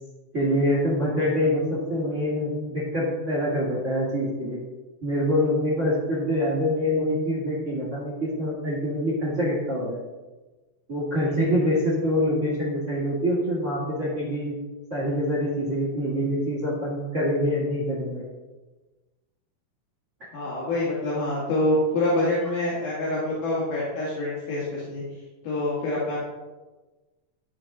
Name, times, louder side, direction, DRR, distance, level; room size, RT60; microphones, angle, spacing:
voice 1, 0.3-4.6 5.0-10.0 10.9-14.6 14.9-18.2, equal, 35° right, -4 dB, 1.2 m, -25 dB
voice 2, 20.3-25.0 25.4-26.2, left 1 dB, 70° left, -7 dB, 3.7 m, -26 dB
13.0 x 5.9 x 3.8 m, 1.2 s
omnidirectional pair, 4.5 m